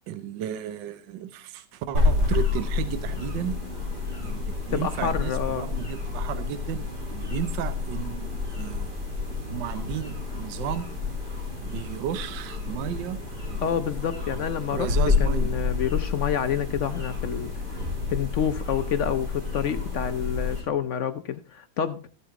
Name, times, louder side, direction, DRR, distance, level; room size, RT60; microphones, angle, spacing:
voice 1, 0.1-3.6 4.2-8.9 9.5-10.9 11.6-13.2 14.3-15.5, right 10 dB, 75° right, 10 dB, 1.4 m, -34 dB
sound 1, 1.9-20.6, left 4 dB, 55° right, 6.0 m, -29 dB
voice 2, 4.7-5.7 13.6-14.9 15.2-17.5 18.1-22.0, left 8 dB, 80° left, 10 dB, 0.6 m, -28 dB
13.5 x 8.1 x 3.6 m, 0.40 s
omnidirectional pair, 2.0 m